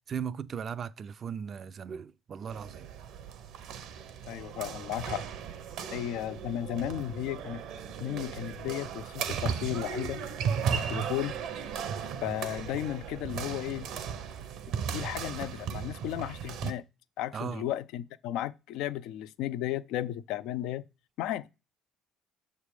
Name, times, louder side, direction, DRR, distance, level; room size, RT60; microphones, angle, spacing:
voice 1, 0.1-2.9 17.3-17.6, right 7 dB, 50° right, 0.4 m, -37 dB
sound 1, 2.5-16.7, right 7 dB, 75° right, 0.8 m, -36 dB
voice 2, 4.3-5.3 5.9-7.6 8.0-10.2 10.7-11.4 12.2-13.9 14.9-16.8 17.2-20.8 21.2-21.5, left 12 dB, 75° left, 0.3 m, -34 dB
6.5 x 3.4 x 4.8 m
supercardioid pair, 70°, 0 cm